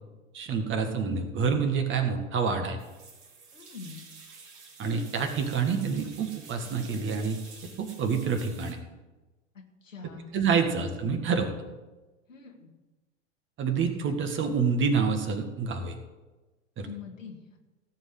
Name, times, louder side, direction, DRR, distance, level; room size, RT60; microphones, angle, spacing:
voice 1, 0.3-2.8 4.8-7.4 7.8-8.8 10.3-11.5 13.6-15.9 16.8-16.9, right 5 dB, 30° right, 5 dB, 1.9 m, -27 dB
sound 1, 2.8-8.7, right 4 dB, 60° right, 3.8 m, -49 dB
voice 2, 3.5-4.0 9.8-10.3 10.7-10.8 12.3-12.7 16.8-17.6, left 5 dB, 80° left, 2 dB, 2.4 m, -44 dB
17.0 x 5.7 x 7.9 m, 1.2 s
figure-of-eight pair, 90°, 38 cm